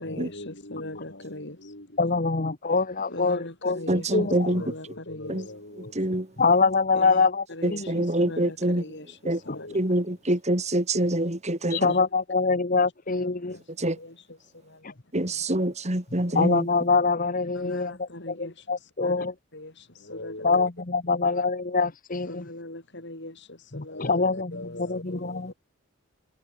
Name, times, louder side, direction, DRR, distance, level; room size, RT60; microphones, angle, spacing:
voice 1, 0.0-2.0 3.1-6.2 6.9-10.4 11.6-12.0 13.2-15.5 16.3-16.5 17.5-19.3 19.5-20.7 22.3-25.5, left 1 dB, 55° left, 5.2 m, -40 dB
voice 2, 2.0-3.8 4.1-4.5 6.4-7.4 7.7-7.9 11.7-13.6 16.3-19.3 20.4-22.4 23.7-24.5 24.8-25.5, left 4 dB, 40° left, 1.1 m, -24 dB
voice 3, 3.9-4.6 5.3-5.4 5.9-6.3 7.6-8.8 9.2-9.4 9.7-11.9 13.8-14.0 15.1-16.7, right 1 dB, 30° right, 3.1 m, -25 dB
head